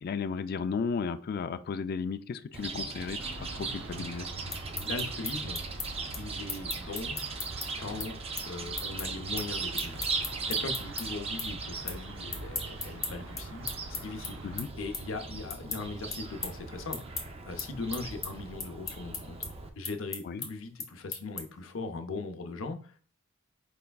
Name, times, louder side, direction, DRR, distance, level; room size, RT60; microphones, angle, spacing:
voice 1, 0.0-3.2 3.5-4.3 14.4-14.7 20.2-20.5, left 5 dB, 50° left, 0.3 m, -34 dB
Chirp tweet, 2.5-19.7, right 4 dB, 30° right, 0.5 m, -38 dB
sound 1, 3.2-14.6, right 2 dB, 85° right, 0.7 m, -47 dB
voice 2, 4.5-5.6 6.2-7.2 7.8-8.2 8.5-14.4 14.7-19.4 19.8-23.0, left 3 dB, 85° left, 0.7 m, -39 dB
sound 2, 4.5-11.0 11.4-12.0 12.3-21.7, left 4 dB, 15° left, 0.8 m, -38 dB
4.9 x 3.3 x 2.3 m
head